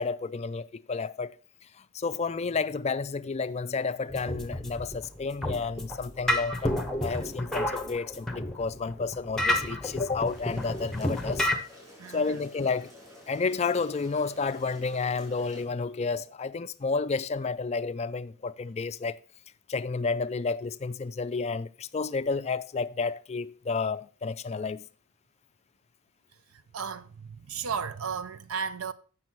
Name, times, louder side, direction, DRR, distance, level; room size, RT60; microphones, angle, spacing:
voice 1, 0.0-1.4 1.7-11.5 12.1-12.9 13.3-19.2 19.7-24.9, left 4 dB, 30° left, 0.4 m, -31 dB
sound 1, 4.1-11.6, left 1 dB, ahead, 0.9 m, -31 dB
sound 2, 10.2-15.6, equal, 15° right, 4.2 m, -51 dB
voice 2, 12.0-12.4 26.7-28.9, right 6 dB, 70° right, 0.5 m, -34 dB
7.7 x 6.2 x 5.8 m
head